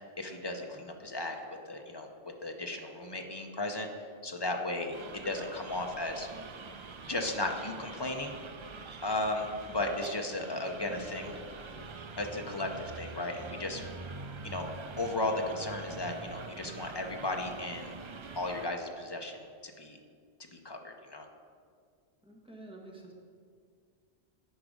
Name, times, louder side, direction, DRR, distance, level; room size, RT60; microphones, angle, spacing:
voice 1, 0.2-1.4 1.7-2.1 2.4-3.9 4.2-6.3 7.1-8.3 9.0-11.3 12.2-13.8 14.4-14.7 15.0-17.9 18.4-20.0 20.5-21.3, left 2 dB, 30° left, 3 dB, 0.6 m, -35 dB
sound 1, 4.9-18.7, right 4 dB, 50° right, 0.3 m, -45 dB
voice 2, 10.9-11.9 14.4-14.5 22.2-23.1, right 1 dB, 5° right, -3 dB, 1.2 m, -48 dB
10.5 x 5.0 x 5.0 m, 2.1 s
omnidirectional pair, 1.1 m